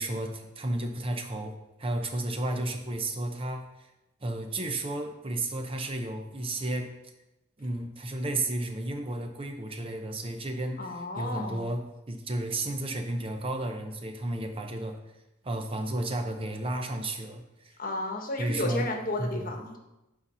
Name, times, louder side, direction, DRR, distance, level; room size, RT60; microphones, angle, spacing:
voice 1, 0.0-3.9 4.2-6.9 7.6-11.8 12.1-15.0 15.4-17.7 18.4-18.9 19.2-19.6, right 1 dB, 30° right, 4 dB, 0.7 m, -32 dB
voice 2, 10.8-11.6 17.8-19.8, left 2 dB, 45° left, 3 dB, 1.1 m, -33 dB
8.7 x 4.2 x 5.5 m, 0.96 s
head